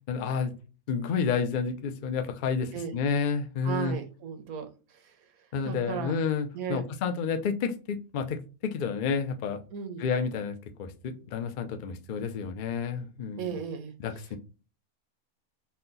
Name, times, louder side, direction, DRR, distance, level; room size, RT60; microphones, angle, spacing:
voice 1, 0.1-0.5 0.9-4.0 5.5-9.6 10.0-13.5 14.0-14.4, left 6 dB, 60° left, 6 dB, 0.5 m, -30 dB
voice 2, 3.6-5.2 5.6-6.2 6.5-6.9 9.7-10.0 13.4-13.9, right 7 dB, 75° right, 7 dB, 1.2 m, -36 dB
4.2 x 2.2 x 3.8 m, 0.34 s
omnidirectional pair, 1.5 m